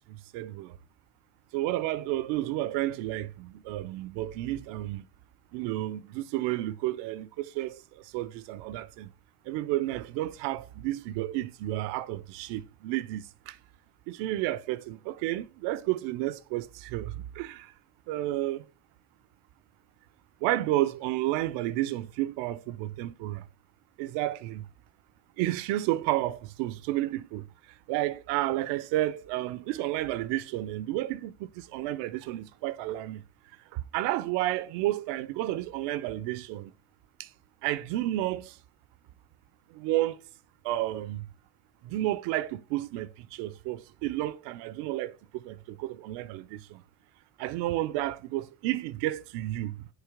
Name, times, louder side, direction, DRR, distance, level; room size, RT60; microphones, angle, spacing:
voice 1, 0.1-0.8 1.5-5.1 5.5-9.1 9.5-13.6 14.1-17.7 18.1-18.7 20.4-23.5 24.0-24.6 25.4-27.4 27.9-33.2 33.7-36.7 37.2-37.3 37.6-38.6 39.7-40.2 40.6-41.3 41.8-46.8 47.4-49.9, right 15 dB, 70° right, 0.6 m, -31 dB
9.1 x 3.1 x 3.5 m
hypercardioid pair, 55°, 45 cm